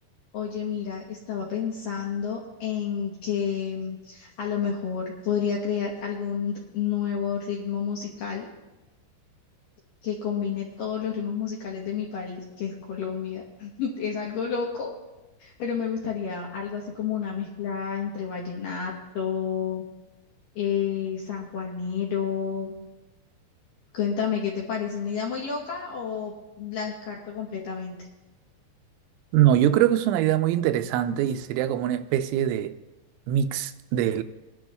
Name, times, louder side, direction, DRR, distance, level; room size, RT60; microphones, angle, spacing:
voice 1, 0.3-8.5 10.0-14.9 15.4-19.8 20.6-22.8 23.9-28.0, left 7 dB, 70° left, 2.1 m, -30 dB
voice 2, 29.3-32.7 33.3-34.2, right 11 dB, 85° right, 2.9 m, -23 dB
24.0 x 10.5 x 2.3 m
omnidirectional pair, 5.3 m